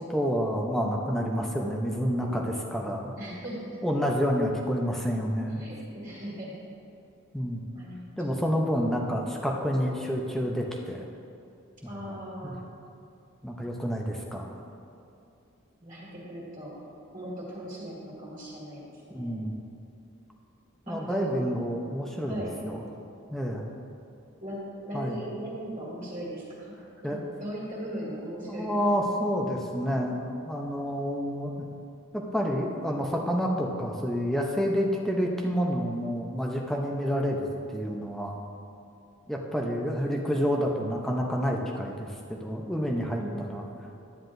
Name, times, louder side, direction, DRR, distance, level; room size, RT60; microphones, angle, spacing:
voice 1, 0.0-3.2 3.8-5.7 7.3-7.6 8.2-11.1 11.8-12.2 12.4-12.6 13.4-14.6 19.1-19.5 20.9-22.8 23.3-23.6 24.9-25.2 27.0-27.2 28.5-31.7 32.1-38.3 39.3-43.6, equal, ahead, 0 dB, 0.6 m, -29 dB
voice 2, 3.2-3.8 5.6-6.6 7.7-8.3 8.5-8.6 11.8-12.6 15.8-16.8 17.1-18.8 19.1-19.5 20.9-21.6 22.3-22.6 24.4-28.8 43.1-43.7, right 1 dB, 40° right, -7 dB, 2.1 m, -38 dB
11.0 x 9.5 x 2.6 m, 2.6 s
head